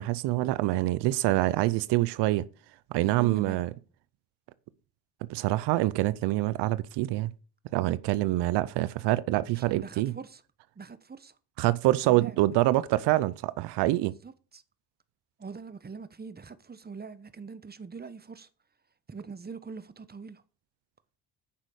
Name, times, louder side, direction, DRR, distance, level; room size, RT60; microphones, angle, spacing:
voice 1, 0.0-2.4 2.9-3.7 5.3-7.3 7.7-10.1 11.6-14.1, right 17 dB, 90° right, 0.7 m, -26 dB
voice 2, 3.0-3.6 9.6-10.4 10.8-11.3 12.0-12.4 14.2-14.6 15.4-18.5 19.1-20.4, right 5 dB, 25° right, 1.2 m, -43 dB
9.5 x 6.3 x 6.5 m
cardioid pair, 80°, 40 cm